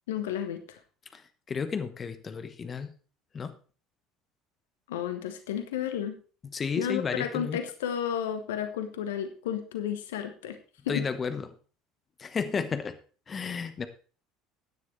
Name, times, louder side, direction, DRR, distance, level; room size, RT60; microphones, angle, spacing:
voice 1, 0.1-0.8 4.9-6.2 6.8-10.6 10.8-11.0, left 9 dB, 75° left, 9 dB, 1.2 m, -32 dB
voice 2, 1.5-2.9 3.3-3.5 6.5-7.6 10.9-11.5 12.2-13.0 13.3-13.9, left 5 dB, 30° left, 11 dB, 1.1 m, -32 dB
15.0 x 9.8 x 3.3 m, 0.39 s
figure-of-eight pair, 65°, 0 cm